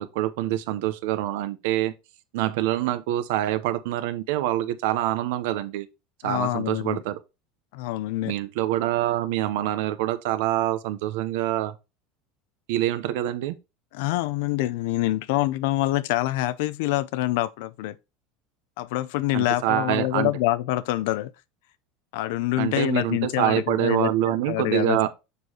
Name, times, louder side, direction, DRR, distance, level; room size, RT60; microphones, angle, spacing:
voice 1, 0.0-1.9 2.3-5.9 6.2-7.2 8.2-11.7 12.7-13.5 19.3-20.3 22.6-25.1, right 14 dB, 75° right, 0.7 m, -25 dB
voice 2, 6.2-7.0 7.7-8.3 13.9-18.0 18.8-21.3 22.1-25.1, left 16 dB, 75° left, 0.5 m, -26 dB
6.8 x 6.4 x 2.8 m
supercardioid pair, 150°, 0 cm